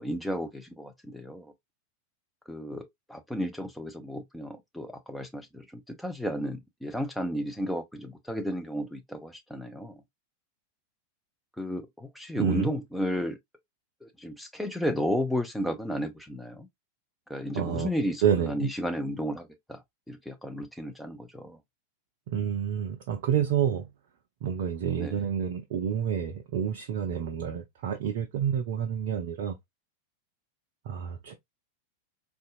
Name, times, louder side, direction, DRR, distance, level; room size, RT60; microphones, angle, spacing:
voice 1, 0.0-1.5 2.5-2.8 3.1-10.0 11.6-13.4 14.0-16.7 17.3-19.8 20.1-21.6 25.0-25.2, equal, ahead, 0.8 m, -33 dB
voice 2, 12.4-12.7 17.5-17.9 18.2-18.7 22.3-23.9 24.4-29.6 30.9-31.3, right 8 dB, 50° right, 0.5 m, -28 dB
3.9 x 2.5 x 2.5 m
figure-of-eight pair, 90°, 0 cm